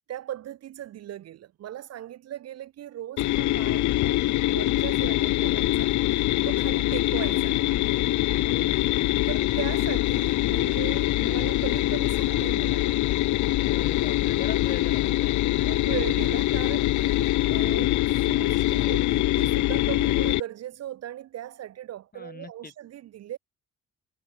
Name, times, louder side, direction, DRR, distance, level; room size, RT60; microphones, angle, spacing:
voice 1, 0.1-5.9 6.4-7.7 9.3-13.0 15.6-23.4, right 12 dB, 55° right, 0.6 m, -38 dB
sound 1, 3.2-20.4, left 17 dB, 70° left, 0.5 m, -24 dB
voice 2, 8.4-8.9 13.7-15.8 22.1-22.7, left 4 dB, 30° left, 4.1 m, -40 dB
cardioid pair, 90°, 30 cm